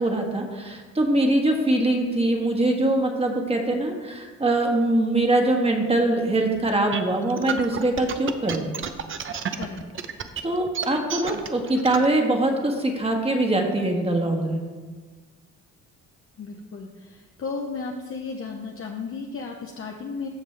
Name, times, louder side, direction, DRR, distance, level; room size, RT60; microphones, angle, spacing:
voice 1, 0.0-8.6 10.4-14.6, right 1 dB, 20° right, 2 dB, 1.5 m, -23 dB
sound 1, 6.7-12.1, right 7 dB, 40° right, 0.7 m, -31 dB
voice 2, 9.5-10.1 16.4-20.3, left 4 dB, 45° left, 1 dB, 0.8 m, -34 dB
15.0 x 5.3 x 3.3 m, 1.4 s
cardioid pair, 90°, 30 cm